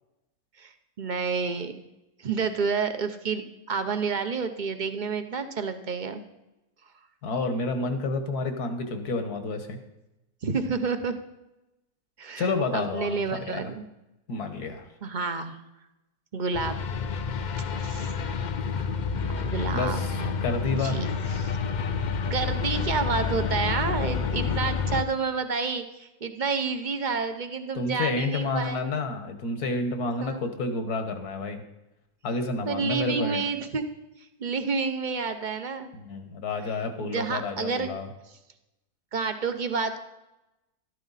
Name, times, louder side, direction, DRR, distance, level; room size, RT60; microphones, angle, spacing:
voice 1, 0.6-1.8 2.2-6.2 10.4-11.2 12.2-13.8 15.0-15.6 16.3-16.8 17.8-18.1 18.8-20.3 20.8-21.6 22.3-28.9 30.2-30.4 32.6-33.9 34.2-35.9 37.0-37.9 38.3-38.4 39.1-40.0, right 5 dB, 35° right, 8 dB, 0.9 m, -30 dB
voice 2, 7.2-9.8 12.4-13.7 14.3-14.8 19.7-20.9 27.8-31.6 32.2-33.4 35.9-38.1, left 3 dB, 75° left, 7 dB, 1.9 m, -30 dB
sound 1, 16.5-25.0, left 5 dB, 90° left, 0.4 m, -29 dB
13.0 x 12.5 x 4.2 m, 0.95 s
omnidirectional pair, 1.7 m